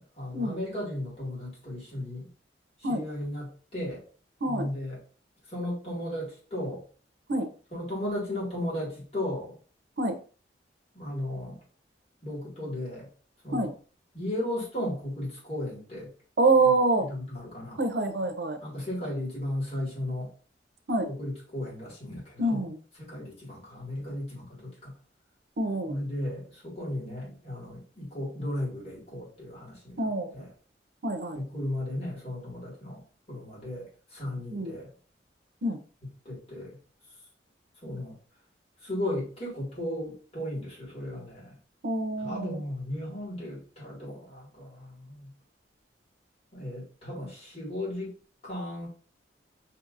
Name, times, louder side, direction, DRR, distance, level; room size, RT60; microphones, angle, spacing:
voice 1, 0.0-2.3 2.9-4.0 4.4-5.0 5.5-6.8 7.7-9.6 10.9-11.6 12.2-13.1 13.4-13.7 14.1-16.1 17.0-17.8 18.6-20.3 21.1-22.6 23.0-24.9 25.8-30.0 30.3-30.5 31.3-33.0 33.3-33.9 34.1-34.9 36.3-36.8 37.8-38.2 38.8-41.6 42.2-45.3 46.5-48.1 48.4-48.9, left 1 dB, 35° left, -6 dB, 2.1 m, -35 dB
voice 2, 16.4-17.1 17.8-18.6 20.9-21.1 22.4-22.8 25.6-25.9 30.0-30.3 31.0-31.4 34.5-34.8 35.6-35.8 41.8-42.6, right 2 dB, 70° right, 7 dB, 0.7 m, -26 dB
5.6 x 2.8 x 2.5 m, 0.40 s
head